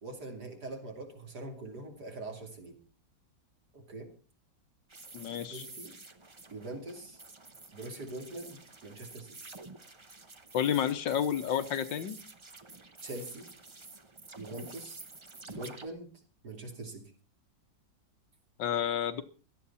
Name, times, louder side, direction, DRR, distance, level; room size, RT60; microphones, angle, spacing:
voice 1, 0.0-2.8 3.7-4.1 5.5-6.0 6.5-7.2 7.7-9.5 13.0-13.5 14.4-15.0 15.5-16.1 16.4-17.0, right 2 dB, 60° right, 2 dB, 3.4 m, -43 dB
sound 1, 4.9-15.9, right 3 dB, 25° right, 0.6 m, -50 dB
voice 2, 5.1-5.7 10.5-12.2 18.6-19.2, left 9 dB, 80° left, 10 dB, 1.8 m, -30 dB
17.0 x 13.0 x 4.2 m, 0.37 s
omnidirectional pair, 2.0 m